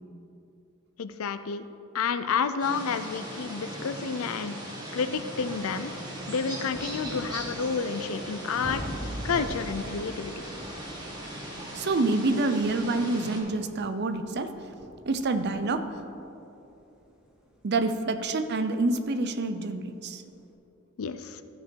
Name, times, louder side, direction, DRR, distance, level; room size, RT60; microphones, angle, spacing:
voice 1, 1.0-1.7 1.9-4.5 4.9-5.9 6.3-8.8 9.2-10.3 21.0-21.4, left 5 dB, 70° left, 11 dB, 0.5 m, -30 dB
sound 1, 2.6-13.4, right 1 dB, 20° right, 1.6 m, -39 dB
sound 2, 5.2-19.1 20.0-20.1, equal, 5° right, 1.0 m, -44 dB
voice 2, 11.7-14.5 15.1-15.9 17.6-20.2, right 2 dB, 50° right, 9 dB, 0.5 m, -27 dB
14.5 x 5.1 x 4.6 m, 2.8 s
head